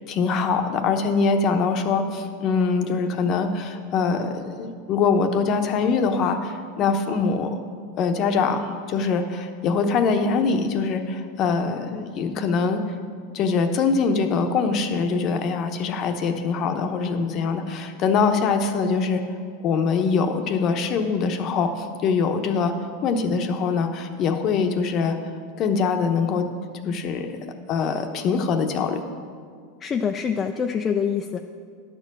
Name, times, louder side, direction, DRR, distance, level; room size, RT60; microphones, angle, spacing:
voice 1, 0.1-7.6 8.0-12.8 13.3-19.2 19.6-22.7 23.0-25.2 25.6-26.5 26.8-27.3 27.7-29.0, left 5 dB, 45° left, 7 dB, 0.9 m, -23 dB
voice 2, 29.8-31.4, left 7 dB, 25° left, 4 dB, 0.4 m, -25 dB
10.5 x 4.6 x 7.2 m, 2.1 s
supercardioid pair, 120°, 0 cm